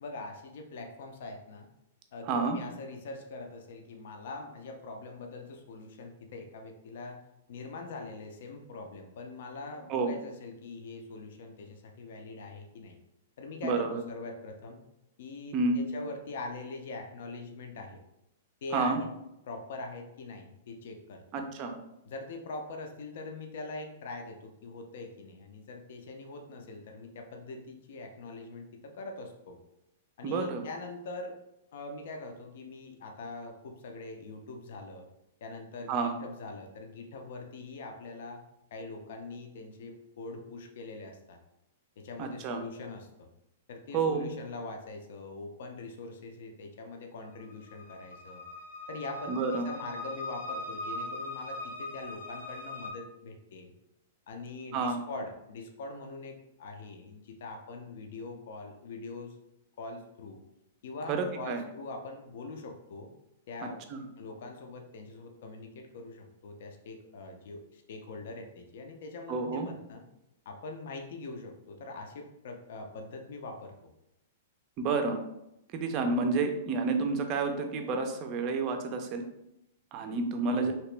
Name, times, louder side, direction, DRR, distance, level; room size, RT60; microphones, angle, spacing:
voice 1, 0.0-1.7 2.1-7.2 7.5-13.0 13.4-14.8 15.2-18.0 18.6-19.1 19.4-21.2 22.1-29.6 30.2-31.4 31.7-35.1 35.4-38.4 38.7-41.4 42.0-43.3 43.7-48.4 48.9-53.7 54.3-59.3 59.8-60.4 60.8-63.1 63.5-63.8 64.2-70.0 70.5-73.9 80.5-80.7, left 3 dB, 60° left, 4 dB, 0.5 m, -43 dB
voice 2, 2.3-2.6 9.9-10.1 13.6-14.0 15.5-15.8 18.7-19.0 21.3-21.8 30.2-30.6 35.9-36.2 42.2-42.6 43.9-44.3 49.3-49.7 54.7-55.0 61.1-61.6 63.9-64.1 69.3-69.7 74.8-75.2 75.7-79.2 79.9-80.7, right 4 dB, 30° right, 5 dB, 0.4 m, -29 dB
sound 1, 47.2-52.9, left 2 dB, 85° left, 0.8 m, -40 dB
2.9 x 2.9 x 3.3 m, 0.84 s
hypercardioid pair, 160°, 0 cm